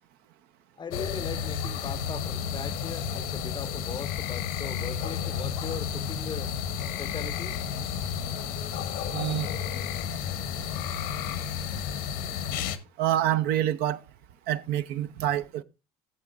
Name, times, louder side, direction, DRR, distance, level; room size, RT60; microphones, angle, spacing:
voice 1, 0.8-6.5 7.0-7.6, left 6 dB, 25° left, 0.5 m, -39 dB
sound 1, 0.9-12.8, left 8 dB, 80° left, 1.0 m, -32 dB
voice 2, 9.1-9.5 13.0-14.0 14.5-15.6, right 12 dB, 70° right, 0.7 m, -27 dB
15.0 x 7.3 x 2.5 m
supercardioid pair, 85°, 17 cm